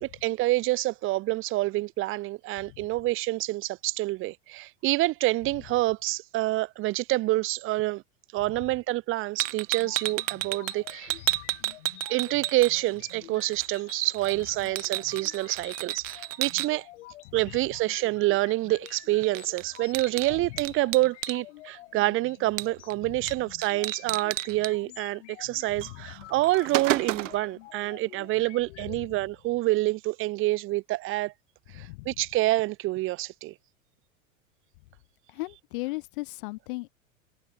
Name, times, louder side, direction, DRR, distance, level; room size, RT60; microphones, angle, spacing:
voice 1, 0.0-8.0 8.3-11.2 12.1-16.9 17.3-31.3 31.7-33.5, right 18 dB, 30° right, 0.7 m, -27 dB
sound 1, 9.4-13.1 13.4-16.7 18.9-19.0 19.2-21.4 22.6-22.9 23.3-23.4 23.6-24.7 25.8-25.9 26.3-27.5, right 15 dB, 65° right, 0.7 m, -32 dB
sound 2, 9.8-29.0, left 17 dB, 60° left, 1.9 m, -49 dB
voice 2, 31.7-32.1 35.3-36.9, left 24 dB, 45° left, 0.4 m, -36 dB
hypercardioid pair, 95°, 40 cm